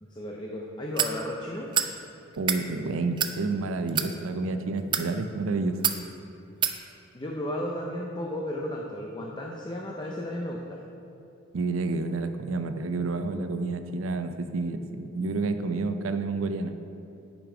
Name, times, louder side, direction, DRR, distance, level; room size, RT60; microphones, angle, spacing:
voice 1, 0.0-1.7 7.1-10.8, left 1 dB, 20° left, -2 dB, 0.6 m, -34 dB
sound 1, 1.0-1.1 1.7-1.9 2.3-2.6 3.2-3.3 3.9-4.1 4.8-5.1 5.8-6.0 6.6-6.8, right 8 dB, 25° right, 0.3 m, -26 dB
voice 2, 2.4-5.8 11.5-16.7, right 3 dB, 90° right, 9 dB, 0.5 m, -29 dB
8.9 x 5.2 x 5.0 m, 2.6 s
head